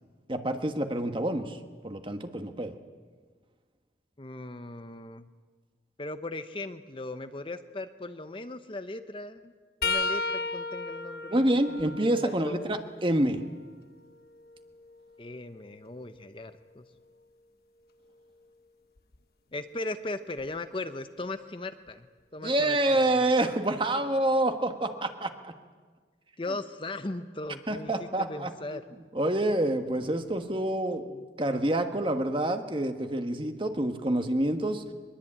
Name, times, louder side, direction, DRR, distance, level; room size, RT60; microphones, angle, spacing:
voice 1, 0.3-1.6 1.8-2.7 11.3-13.4 22.4-25.5 27.7-28.8 29.1-34.8, right 1 dB, 30° right, 7 dB, 1.5 m, -27 dB
voice 2, 4.2-5.3 6.0-9.5 9.8-11.3 11.7-12.0 12.2-12.8 15.2-16.8 19.5-22.1 22.3-23.2 26.4-28.9, left 2 dB, 30° left, 9 dB, 0.8 m, -38 dB
sound 1, 9.8-13.6 14.1-16.1 19.0-19.2 20.4-20.6 21.9-22.0, left 3 dB, 60° left, 1.0 m, -35 dB
23.0 x 21.5 x 8.8 m, 1.5 s
head